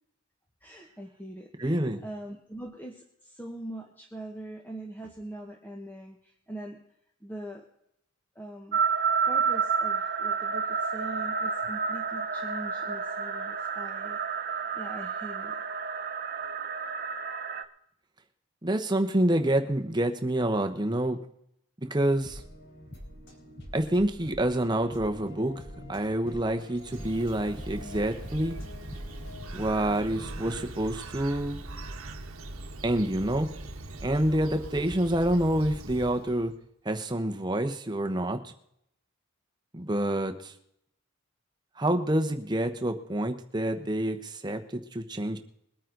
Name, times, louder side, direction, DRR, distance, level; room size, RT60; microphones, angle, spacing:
voice 1, 0.6-6.8 7.2-7.7 8.3-8.8 9.3-14.2 14.5-15.6, right 1 dB, 10° left, 1 dB, 1.2 m, -42 dB
voice 2, 1.6-2.0 18.6-21.2 21.8-22.4 23.7-25.5 25.9-28.6 29.5-31.6 32.8-33.5 34.0-36.5 36.8-38.5 39.7-40.5 41.8-45.4, right 1 dB, 20° right, 6 dB, 1.0 m, -27 dB
sound 1, 8.7-17.6, right 6 dB, 45° right, 0.8 m, -30 dB
sound 2, 22.0-30.7, left 1 dB, 55° left, 4.0 m, -45 dB
Bird, 26.5-36.5, right 2 dB, 80° right, 1.4 m, -41 dB
22.0 x 9.2 x 4.0 m, 0.74 s
head